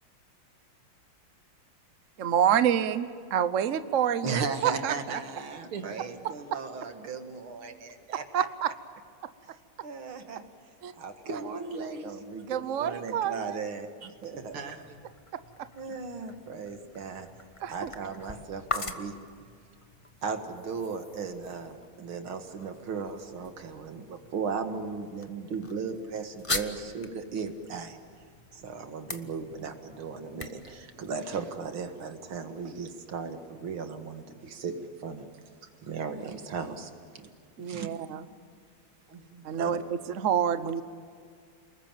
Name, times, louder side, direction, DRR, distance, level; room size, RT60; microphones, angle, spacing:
voice 1, 2.2-5.2 6.2-6.6 8.3-8.7 10.8-10.9 12.5-13.6 17.6-17.9 37.6-38.2 39.4-40.8, right 9 dB, 55° right, 12 dB, 0.9 m, -28 dB
voice 2, 4.2-8.5 9.8-10.4 11.0-11.4 11.8-14.5 15.8-17.3 17.7-19.2 20.2-28.0 28.5-35.3 35.8-37.3 37.6-37.9 39.6-39.7, right 5 dB, 70° right, 7 dB, 2.6 m, -36 dB
voice 3, 11.2-12.2 14.5-15.1 35.6-35.7 39.1-39.5, right 3 dB, 85° right, 5 dB, 2.8 m, -39 dB
sound 1, 14.1-31.9, left 3 dB, 20° left, 0.8 m, -42 dB
29.5 x 21.0 x 9.1 m, 2.1 s
omnidirectional pair, 2.4 m